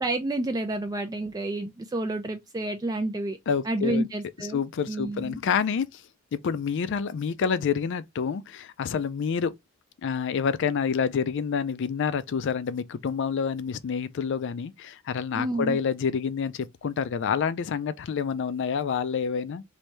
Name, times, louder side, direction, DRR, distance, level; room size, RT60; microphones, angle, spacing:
voice 1, 0.0-3.4 3.6-4.6 4.9-5.4 15.4-15.8, right 2 dB, 20° right, 0.3 m, -29 dB
voice 2, 3.5-4.1 4.5-6.0 6.3-9.5 10.0-19.6, left 6 dB, 60° left, 0.4 m, -28 dB
3.3 x 2.6 x 3.0 m
head